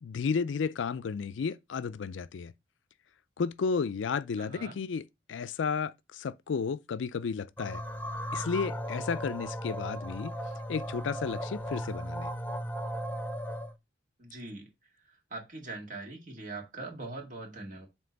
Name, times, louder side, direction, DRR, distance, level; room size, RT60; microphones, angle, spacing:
voice 1, 0.0-2.5 3.4-5.0 5.3-7.8 8.3-10.3 10.7-12.3, left 5 dB, 85° left, 0.4 m, -33 dB
voice 2, 4.4-4.8 14.2-14.7 15.0-17.9, right 2 dB, 45° right, 2.0 m, -42 dB
sound 1, 7.6-13.7, equal, 10° left, 0.5 m, -36 dB
7.7 x 3.1 x 5.1 m
head